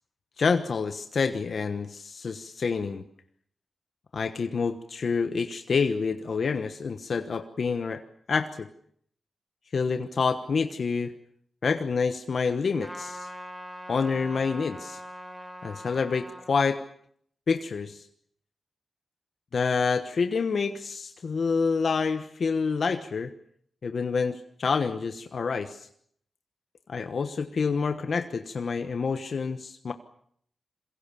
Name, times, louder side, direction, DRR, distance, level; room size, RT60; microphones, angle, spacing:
voice 1, 0.4-3.0 4.1-8.0 8.3-8.7 9.7-11.1 11.6-13.3 13.9-15.0 15.6-16.8 17.5-18.0 19.5-23.3 23.8-25.9 26.9-29.9, left 5 dB, 65° left, 9 dB, 1.2 m, -27 dB
Trumpet, 12.8-16.5, equal, ahead, 4.4 m, -41 dB
27.0 x 22.0 x 7.0 m, 0.66 s
cardioid pair, 65°, 0 cm